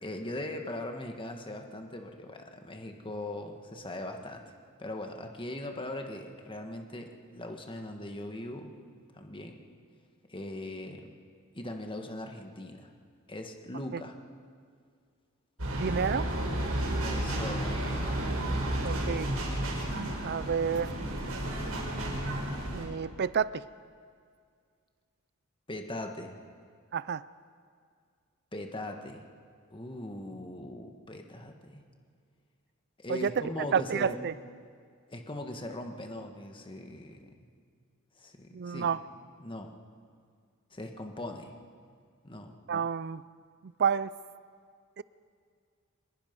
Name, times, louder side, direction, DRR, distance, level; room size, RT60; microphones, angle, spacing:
voice 1, 0.0-4.5 4.8-8.8 9.1-9.6 10.3-11.1 11.5-12.9 13.3-14.1 17.0-18.8 25.7-26.3 28.5-29.2 29.7-31.8 33.0-34.2 35.1-37.5 38.2-38.9 39.4-39.7 40.7-41.5 42.2-42.5, left 1 dB, 25° left, 4 dB, 1.7 m, -40 dB
sound 1, 15.6-22.9, right 1 dB, 85° right, 5.6 m, -32 dB
voice 2, 15.7-16.3 18.8-19.3 20.2-20.9 22.7-23.6 26.9-27.2 33.1-33.4 33.7-34.3 38.5-39.0 42.7-43.2 43.6-44.1 45.0-45.1, right 7 dB, 50° right, 18 dB, 0.5 m, -30 dB
25.0 x 20.5 x 5.4 m, 2.1 s
head